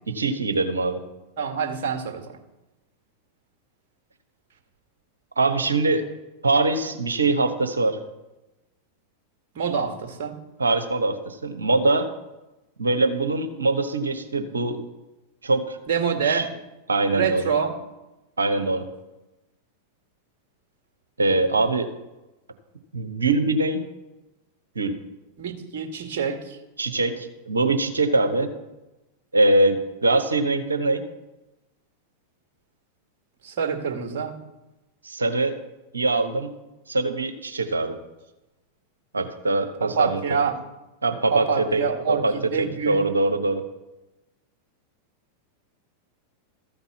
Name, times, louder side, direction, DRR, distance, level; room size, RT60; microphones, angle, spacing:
voice 1, 0.1-1.0 5.4-6.1 6.4-8.0 10.6-12.1 12.8-14.8 15.4-15.8 16.2-16.4 16.9-17.5 18.4-18.8 21.2-21.9 22.9-23.8 24.7-24.9 26.8-28.5 29.3-31.0 35.0-35.6 35.9-36.5 36.9-37.9 39.1-40.2 41.0-41.8 42.1-43.6, right 2 dB, 75° right, 7 dB, 1.1 m, -23 dB
voice 2, 1.4-2.4 9.5-10.4 15.9-16.5 17.1-17.7 25.4-26.6 33.4-34.3 40.0-40.6 41.3-43.0, right 6 dB, 50° right, 5 dB, 1.8 m, -26 dB
13.5 x 5.4 x 7.3 m, 1.0 s
figure-of-eight pair, 90°, 0 cm